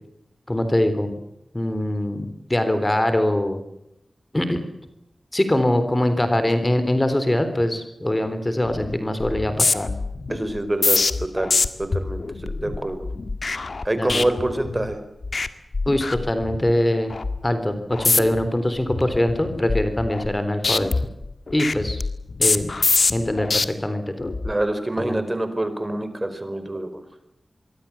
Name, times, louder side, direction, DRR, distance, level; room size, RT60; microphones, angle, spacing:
voice 1, 0.5-1.1 1.5-3.6 4.3-4.6 5.3-9.9 14.0-14.2 15.9-17.1 17.4-20.9 21.5-22.0 22.4-22.7 23.1-24.3 25.0-25.1, left 1 dB, 20° left, 9 dB, 3.7 m, -23 dB
sound 1, 8.7-8.9 9.2-14.9 15.2-15.5 15.7-16.7 17.1-17.4 17.9-18.5 18.9-20.4 20.6-23.6 24.2-24.5, left 3 dB, 60° left, 1.9 m, -25 dB
voice 2, 10.3-11.5 11.8-13.0 13.8-15.0 24.4-27.0, right 1 dB, 20° right, 10 dB, 4.8 m, -26 dB
25.5 x 24.0 x 7.3 m, 0.86 s
wide cardioid pair, 80°, 0 cm